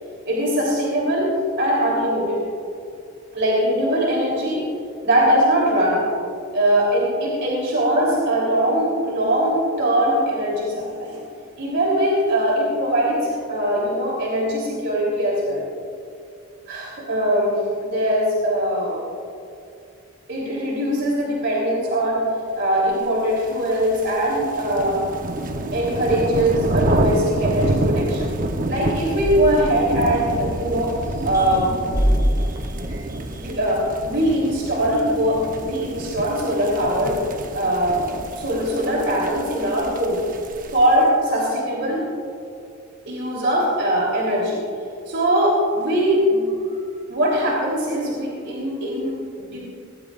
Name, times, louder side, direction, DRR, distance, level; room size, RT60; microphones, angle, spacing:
voice 1, 0.2-1.3 1.6-2.4 3.3-4.6 5.0-6.1 6.5-11.2 11.5-15.6 16.7-19.0 20.3-22.2 22.5-25.0 25.7-28.3 28.7-30.9 31.2-31.7 33.3-37.2 37.5-40.2 40.7-42.0 43.1-44.6 45.1-46.8 47.1-49.6, equal, 60° right, -4 dB, 3.5 m, -21 dB
sound 1, 23.5-41.0, right 1 dB, 45° right, 0.8 m, -28 dB
sound 2, 29.2-30.8 31.1-34.2, equal, 15° right, 4.2 m, -26 dB
19.5 x 19.0 x 2.5 m, 2.5 s
head